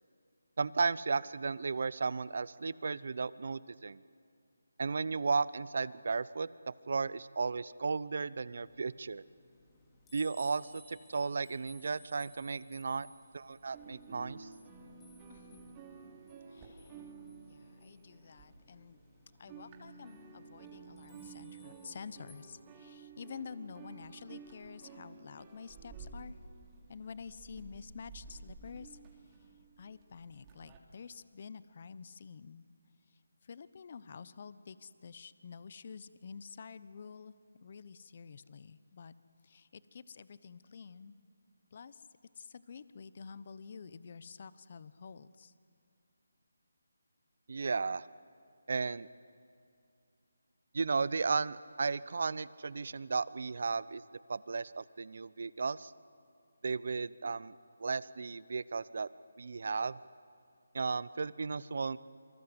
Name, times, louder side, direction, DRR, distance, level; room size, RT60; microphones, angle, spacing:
voice 1, 0.6-4.0 4.8-6.5 6.9-9.2 10.1-13.1 13.3-14.5 47.5-48.1 48.7-49.1 50.7-54.0 54.3-55.9 56.6-57.5 57.8-59.1 59.4-60.0 60.7-62.0, right 4 dB, 55° right, 19 dB, 0.8 m, -34 dB
sound 1, 8.6-22.3, left 1 dB, 10° left, 4.0 m, -63 dB
sound 2, 13.7-19.1 19.3-30.8, right 5 dB, 20° right, 2.9 m, -52 dB
voice 2, 15.3-15.8 16.4-17.1 17.5-19.0 19.4-26.4 26.9-29.5 29.8-32.7 33.1-39.1 39.4-41.2 41.7-42.1 42.3-45.5, left 5 dB, 45° left, 16 dB, 0.9 m, -49 dB
27.0 x 24.5 x 8.1 m, 2.4 s
figure-of-eight pair, 160°, 0 cm